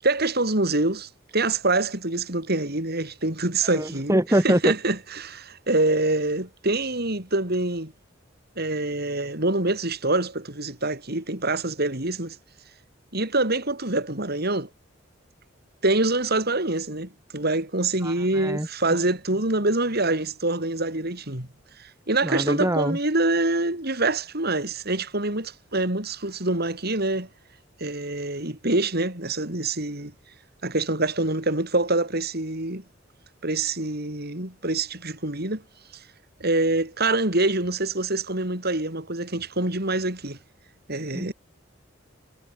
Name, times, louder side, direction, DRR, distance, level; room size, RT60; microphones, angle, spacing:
voice 1, 0.0-7.9 8.6-12.4 13.1-14.7 15.8-21.5 21.8-27.3 27.8-30.1 30.6-32.8 33.4-35.6 36.4-40.4 40.9-41.3, right 2 dB, 55° right, 6.1 m, -25 dB
voice 2, 3.7-4.7 18.0-18.7 22.2-23.0 41.1-41.3, right 1 dB, 15° right, 3.1 m, -24 dB
head